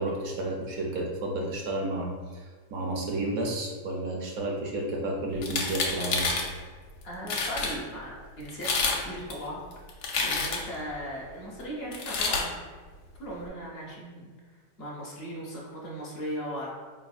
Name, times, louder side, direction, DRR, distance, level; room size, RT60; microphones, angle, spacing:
voice 1, 0.0-6.3, right 1 dB, 65° right, 0 dB, 0.9 m, -31 dB
sound 1, 5.4-6.5 7.0-7.1 7.3-7.7 8.5-9.0 9.3-10.8 11.9-12.5, left 4 dB, 80° left, 1.2 m, -28 dB
voice 2, 7.0-8.7 9.0-9.6 10.2-12.6 13.2-16.7, equal, 50° left, -4 dB, 0.7 m, -38 dB
4.4 x 3.4 x 2.4 m, 1.5 s
omnidirectional pair, 1.9 m